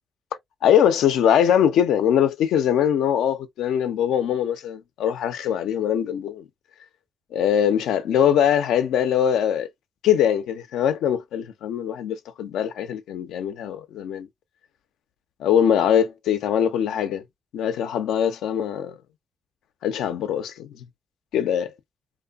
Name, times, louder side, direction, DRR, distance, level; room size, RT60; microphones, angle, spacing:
voice 1, 0.6-6.4 7.3-9.7 10.0-14.3 15.4-17.2 17.5-19.0 19.8-20.8 21.3-21.7, left 9 dB, 85° left, 0.4 m, -22 dB
2.6 x 2.2 x 2.2 m
supercardioid pair, 60°, 0 cm